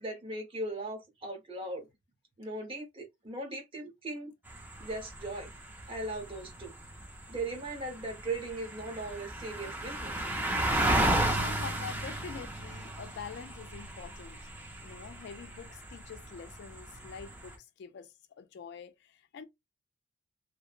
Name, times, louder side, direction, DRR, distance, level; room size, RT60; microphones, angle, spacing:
voice 1, 0.0-1.9 2.4-4.3 4.8-5.5 5.9-6.7 7.3-10.2, right 2 dB, 25° right, 0.8 m, -38 dB
sound 1, 4.5-17.6, right 1 dB, 10° right, 0.5 m, -34 dB
voice 2, 11.3-14.5 14.8-19.4, left 6 dB, 55° left, 0.3 m, -46 dB
3.0 x 2.1 x 2.4 m
head